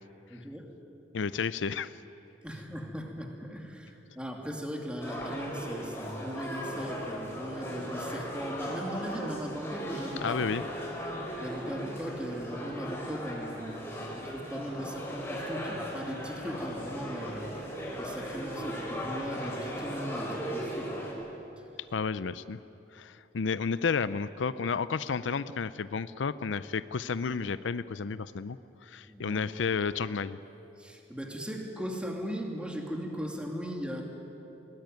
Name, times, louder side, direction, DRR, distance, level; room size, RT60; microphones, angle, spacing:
voice 1, 0.3-0.7 2.4-10.4 11.4-17.5 18.0-21.0 29.1-29.4 30.8-34.0, equal, 5° right, 1 dB, 2.7 m, -38 dB
voice 2, 1.1-1.9 10.2-10.6 21.9-22.6 22.9-28.6 28.8-30.4, left 5 dB, 90° left, 15 dB, 0.5 m, -31 dB
sound 1, 5.0-21.1, equal, 15° left, 4.6 m, -37 dB
22.0 x 19.0 x 9.3 m, 2.9 s
head